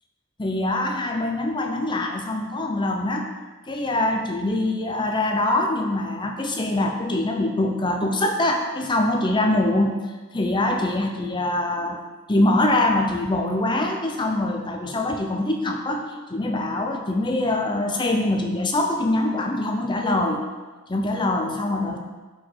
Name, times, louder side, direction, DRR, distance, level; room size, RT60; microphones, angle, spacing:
voice 1, 0.4-3.3 3.7-10.0 10.3-12.0 12.3-16.0 16.3-20.4 20.9-22.0, left 1 dB, 20° left, 3 dB, 0.6 m, -23 dB
12.0 x 4.6 x 4.5 m, 1.3 s
head